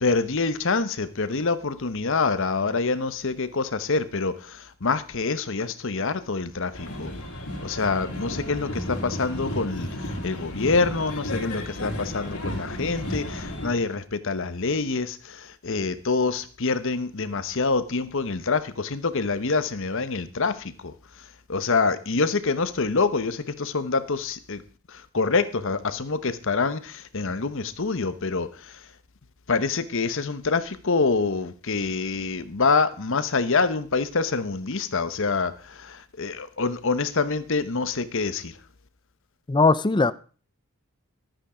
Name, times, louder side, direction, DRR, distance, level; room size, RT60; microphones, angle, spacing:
voice 1, 0.0-7.1 7.6-24.6 24.9-28.9 29.5-38.6, left 4 dB, 60° left, 1.0 m, -26 dB
sound 1, 6.7-13.7, left 1 dB, 85° left, 3.2 m, -33 dB
voice 2, 39.5-40.1, left 3 dB, 20° left, 0.5 m, -19 dB
13.0 x 9.0 x 4.9 m
head